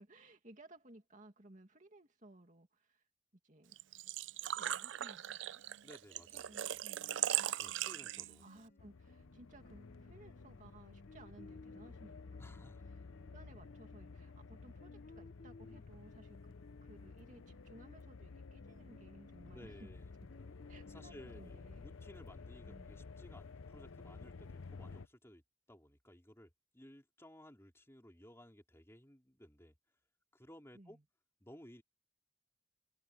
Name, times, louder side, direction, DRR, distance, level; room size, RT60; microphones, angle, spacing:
voice 1, 0.0-3.1 3.4-3.8 4.6-5.6 6.3-7.4 7.6-13.0 13.3-16.5 16.8-19.9 20.7-22.0 22.7-23.1 30.7-31.0, right 1 dB, 35° right, 2.3 m, -59 dB
Engine / Trickle dribble / Fill (with liquid), 3.7-8.6, right 12 dB, 60° right, 0.4 m, -39 dB
voice 2, 5.8-6.8 7.6-8.4 12.4-12.9 19.5-20.1 20.8-25.4 25.7-29.7 30.3-31.0 31.4-31.8, equal, 10° left, 3.7 m, -58 dB
sound 1, 6.9-21.2, left 2 dB, 40° left, 1.3 m, -60 dB
sound 2, 8.8-25.1, left 4 dB, 80° left, 0.7 m, -53 dB
head